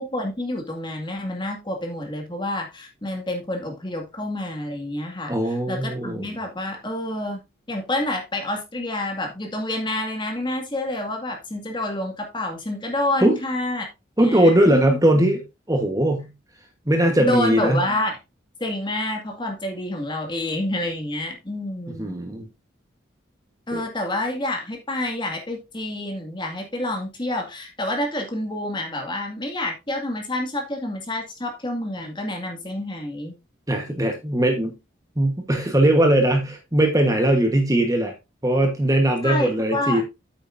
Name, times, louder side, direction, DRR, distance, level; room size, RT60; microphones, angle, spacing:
voice 1, 0.0-7.4 7.7-13.9 14.2-15.0 17.2-18.2 18.6-22.2 23.7-33.4 39.2-40.0, left 1 dB, 25° left, 2.0 m, -28 dB
voice 2, 5.3-6.3 13.2-13.4 14.2-15.4 15.7-16.3 16.9-17.8 22.0-22.5 23.7-23.8 33.7-34.8 35.2-38.1 38.4-40.0, right 1 dB, 20° right, 1.2 m, -20 dB
8.8 x 8.5 x 2.6 m
head